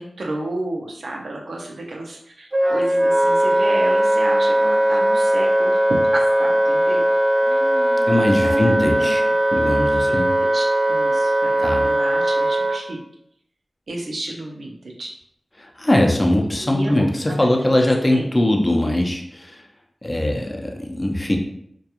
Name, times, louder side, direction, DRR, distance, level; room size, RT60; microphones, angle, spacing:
voice 1, 0.0-5.8 6.1-7.0 7.4-8.1 8.4-9.2 9.7-13.0 13.9-15.1 16.6-17.7 18.1-18.3, right 1 dB, 85° right, 0 dB, 0.5 m, -32 dB
Wind instrument woodwind instrument, 2.5-12.8, right 1 dB, 35° right, 0.6 m, -19 dB
voice 2, 8.1-9.2 9.5-10.3 11.6-11.9 15.6-19.6 20.0-21.4, left 1 dB, 30° left, 1 dB, 0.5 m, -21 dB
2.3 x 2.3 x 2.9 m, 0.71 s
wide cardioid pair, 55°, 0 cm